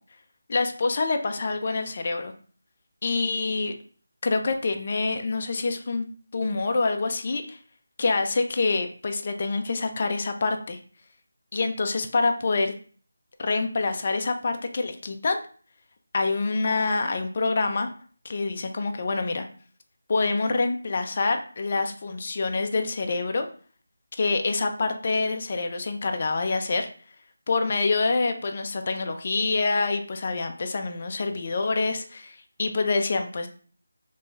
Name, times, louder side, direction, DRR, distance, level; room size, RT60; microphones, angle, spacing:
voice 1, 0.5-2.3 3.0-3.7 4.2-6.1 6.3-7.6 8.0-10.8 11.5-12.7 13.4-15.4 16.1-17.9 18.2-19.5 20.1-23.5 24.1-26.9 27.5-33.5, left 3 dB, 35° left, 6 dB, 0.3 m, -26 dB
3.0 x 2.3 x 3.1 m, 0.43 s
figure-of-eight pair, 175°, 0 cm